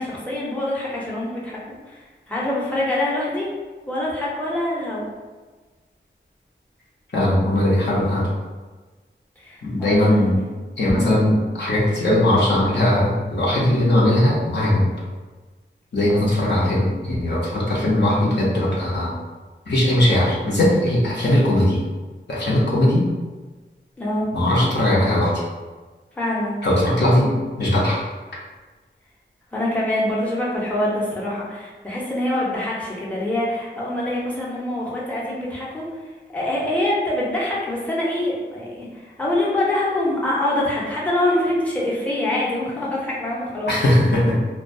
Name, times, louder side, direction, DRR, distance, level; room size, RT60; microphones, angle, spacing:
voice 1, 0.0-3.5 3.9-5.1 9.4-10.4 11.0-11.1 16.1-16.2 24.0-24.3 26.1-26.6 29.5-43.7, left 1 dB, 5° left, -6 dB, 0.6 m, -25 dB
voice 2, 7.1-8.3 9.6-10.4 10.8-14.9 15.9-19.1 19.7-21.8 22.3-23.1 24.3-25.3 26.6-27.3 27.6-28.0 43.7-44.4, left 1 dB, 60° left, -6 dB, 0.7 m, -19 dB
2.2 x 2.2 x 2.6 m, 1.3 s
wide cardioid pair, 50°, 20 cm